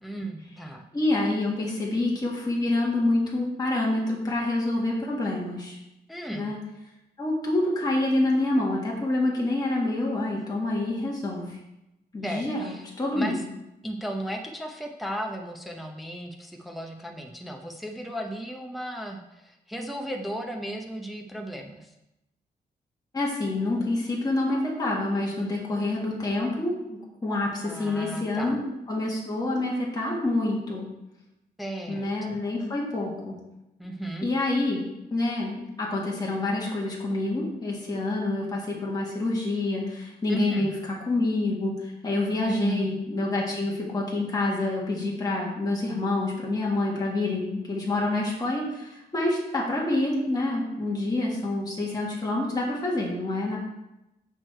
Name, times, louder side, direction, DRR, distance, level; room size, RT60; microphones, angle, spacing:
voice 1, 0.0-0.8 6.1-6.5 12.2-12.9 13.1-13.4 13.8-21.9 27.6-28.6 31.6-32.4 33.8-34.3 40.3-40.7 42.4-42.9, right 1 dB, ahead, 2 dB, 0.7 m, -35 dB
voice 2, 0.9-5.8 6.3-6.6 7.2-11.6 12.1-12.7 13.0-13.4 23.1-30.9 31.9-33.4 34.2-34.8 35.1-53.6, left 2 dB, 20° left, -4 dB, 1.7 m, -27 dB
8.2 x 6.3 x 4.5 m, 0.91 s
wide cardioid pair, 145°, 18 cm